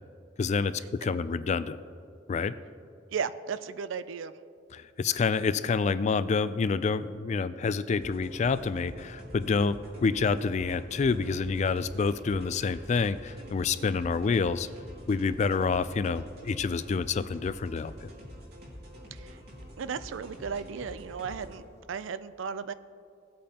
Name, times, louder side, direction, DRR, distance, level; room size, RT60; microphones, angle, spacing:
voice 1, 0.4-1.8 2.3-2.6 4.7-14.7 15.1-18.1, left 5 dB, 35° left, 14 dB, 0.3 m, -28 dB
voice 2, 3.1-4.3 19.1-19.4 19.8-22.7, right 6 dB, 80° right, 14 dB, 0.4 m, -35 dB
sound 1, 7.9-21.6, equal, 55° right, 2.5 m, -47 dB
17.5 x 8.5 x 2.9 m, 2.4 s
head